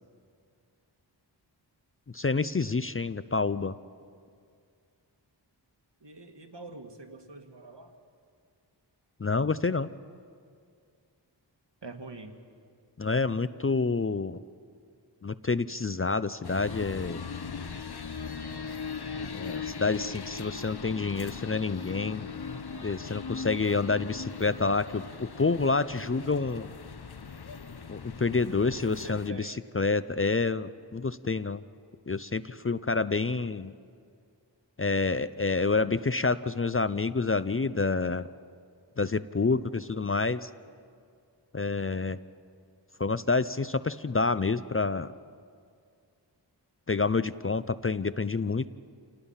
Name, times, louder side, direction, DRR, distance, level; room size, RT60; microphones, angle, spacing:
voice 1, 2.1-3.7 9.2-9.9 13.0-14.4 15.2-17.2 19.3-22.3 22.8-26.7 27.9-31.6 32.1-33.7 34.8-38.3 39.0-40.5 41.5-42.2 43.0-45.1 46.9-48.7, left 4 dB, 30° left, 15 dB, 0.5 m, -28 dB
voice 2, 6.0-7.9 11.8-12.3 28.5-29.5, right 3 dB, 70° right, 5 dB, 1.8 m, -45 dB
sound 1, 16.4-29.3, left 5 dB, 60° left, 0.9 m, -39 dB
28.5 x 18.5 x 5.6 m, 2.2 s
wide cardioid pair, 40°, 44 cm